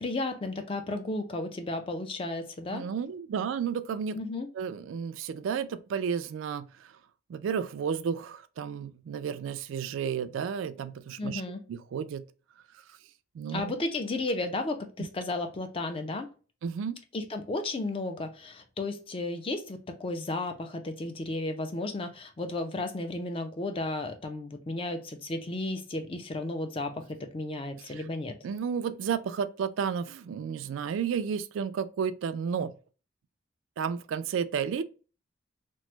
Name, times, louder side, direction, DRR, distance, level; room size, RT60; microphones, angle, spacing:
voice 1, 0.0-2.8 4.1-4.5 11.2-11.6 13.5-16.3 17.1-28.4, left 2 dB, 30° left, 0.4 m, -33 dB
voice 2, 2.7-4.2 4.6-6.7 7.3-11.4 11.7-12.3 13.3-13.7 15.0-15.1 16.6-17.0 27.8-28.0 28.4-32.7 33.8-34.8, right 7 dB, 85° right, 0.3 m, -32 dB
3.0 x 2.0 x 3.0 m
head